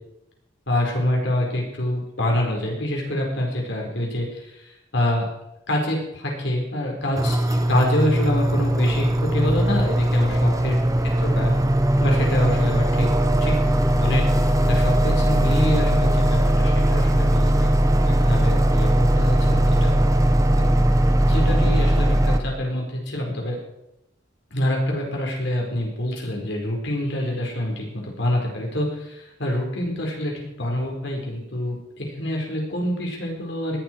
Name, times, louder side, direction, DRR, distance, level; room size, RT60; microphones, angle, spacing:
voice 1, 0.7-5.3 5.7-10.8 11.2-11.5 12.0-13.1 13.4-17.7 18.0-20.0 20.6-20.7 21.3-23.6 24.5-33.8, left 1 dB, 70° left, 0 dB, 4.6 m, -26 dB
sound 1, 7.2-22.4, right 1 dB, 20° right, 1.0 m, -19 dB
19.0 x 12.0 x 4.6 m, 0.85 s
head